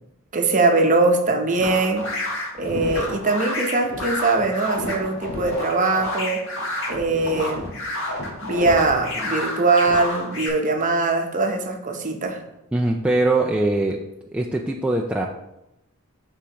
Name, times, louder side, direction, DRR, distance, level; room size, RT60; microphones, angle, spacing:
voice 1, 0.3-2.1 2.6-6.4 6.9-7.8 8.4-12.4, right 3 dB, 35° right, 3 dB, 0.8 m, -21 dB
sound 1, 1.6-10.5, left 1 dB, 60° left, 1.4 m, -29 dB
voice 2, 12.7-14.0 14.3-15.3, right 2 dB, 5° right, -1 dB, 0.3 m, -21 dB
10.0 x 3.6 x 2.9 m, 0.89 s
head